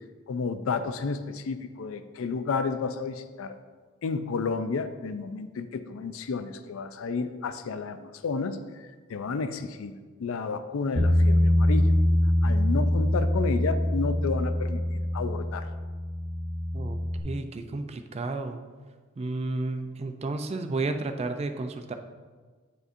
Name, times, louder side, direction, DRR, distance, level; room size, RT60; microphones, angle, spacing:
voice 1, 0.3-3.6 4.0-8.6 9.1-9.9 10.2-12.0 12.4-15.7, left 4 dB, 80° left, 10 dB, 0.4 m, -31 dB
Bass guitar, 11.0-17.2, left 1 dB, 70° right, 1.0 m, -24 dB
voice 2, 17.2-18.6 19.2-21.9, right 3 dB, 30° right, 7 dB, 0.4 m, -32 dB
9.5 x 4.9 x 2.6 m, 1.5 s
head